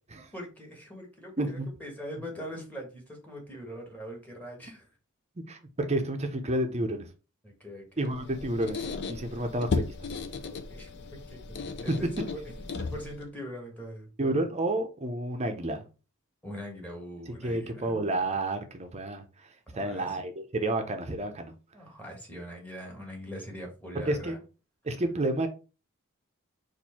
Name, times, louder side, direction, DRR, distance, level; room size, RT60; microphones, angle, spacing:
voice 1, 0.3-4.8 7.4-8.1 9.3-9.4 10.4-11.6 11.8-14.1 16.4-17.9 19.7-20.2 21.7-24.4, equal, 5° left, 1.4 m, -42 dB
voice 2, 1.4-1.7 5.5-5.6 5.9-7.1 8.0-8.8 9.1-9.8 11.9-12.0 14.2-15.8 17.3-19.2 19.7-21.5 23.9-24.4 24.8-25.5, right 1 dB, 30° right, 0.6 m, -30 dB
Squeak, 8.0-13.3, left 4 dB, 50° left, 0.5 m, -35 dB
4.4 x 2.6 x 4.2 m
head